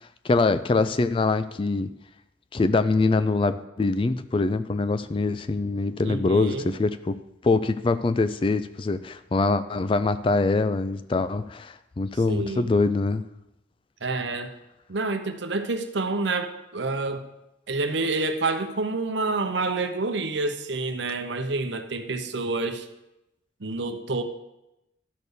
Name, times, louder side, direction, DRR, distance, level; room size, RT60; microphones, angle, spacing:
voice 1, 0.2-1.9 2.5-7.2 7.4-13.2, left 3 dB, 25° left, 13 dB, 0.3 m, -24 dB
voice 2, 6.0-6.7 12.3-12.7 14.0-14.5 14.9-17.2 17.7-22.9 23.6-24.2, right 3 dB, 70° right, 8 dB, 0.8 m, -28 dB
12.5 x 4.3 x 6.7 m, 0.90 s
head